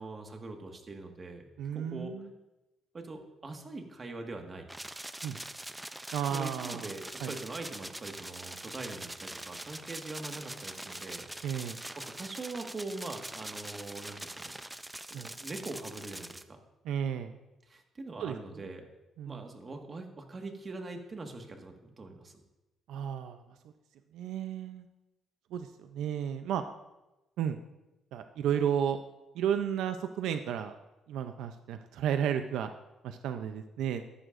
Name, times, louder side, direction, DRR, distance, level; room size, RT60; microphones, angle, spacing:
voice 1, 0.0-2.1 2.9-4.7 6.3-11.2 12.0-14.5 15.1-16.6 17.7-18.9 19.3-22.3, right 3 dB, 35° right, 4 dB, 1.6 m, -42 dB
voice 2, 1.6-2.3 5.2-5.4 6.1-6.9 7.2-7.3 11.4-11.8 15.1-15.3 16.8-17.4 18.2-18.4 18.7-18.8 19.2-19.4 22.9-23.4 24.1-24.9 25.5-26.6 27.4-27.6 28.1-29.0 29.3-30.8 31.1-32.7 33.0-34.0, right 9 dB, 85° right, 8 dB, 0.5 m, -33 dB
sound 1, 4.7-16.4, right 1 dB, 10° right, 0.5 m, -43 dB
14.0 x 11.0 x 2.5 m, 1.0 s
cardioid pair, 90°, 0 cm